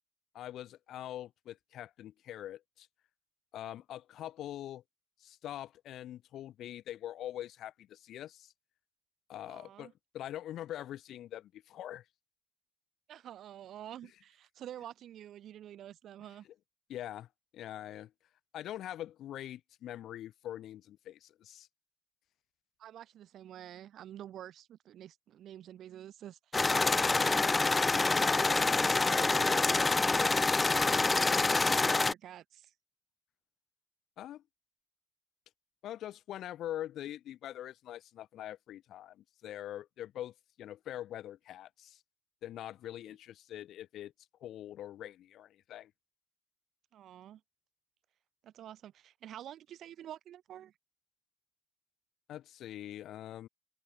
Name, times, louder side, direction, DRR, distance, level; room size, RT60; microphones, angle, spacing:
voice 1, 0.3-2.9 3.5-4.8 5.2-8.5 9.3-12.0 16.9-17.3 17.5-18.1 18.5-21.7 29.4-29.6 34.2-34.4 35.8-42.0 42.4-44.1 44.4-45.9 52.3-53.5, left 12 dB, 75° left, 3.7 m, -43 dB
voice 2, 9.5-9.9 13.1-16.5 22.8-27.6 27.9-28.8 29.1-32.7 43.1-43.2 46.9-47.4 48.4-50.7, right 11 dB, 75° right, 5.5 m, -49 dB
sound 1, 26.5-32.1, left 3 dB, 25° left, 0.8 m, -26 dB
cardioid pair, 90°, 0 cm